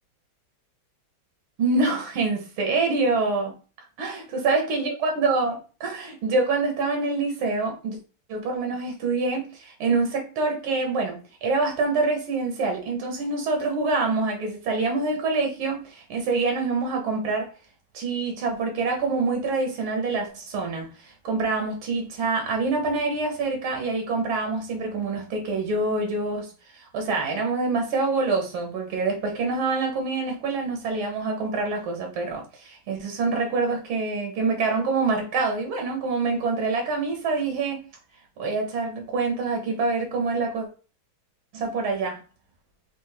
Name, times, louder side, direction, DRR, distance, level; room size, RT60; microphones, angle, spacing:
voice 1, 1.6-3.5 4.0-8.0 8.3-17.5 17.9-37.8 38.4-40.7 41.5-42.2, right 3 dB, 90° right, 2.0 m, -26 dB
5.3 x 2.7 x 3.4 m
omnidirectional pair, 2.2 m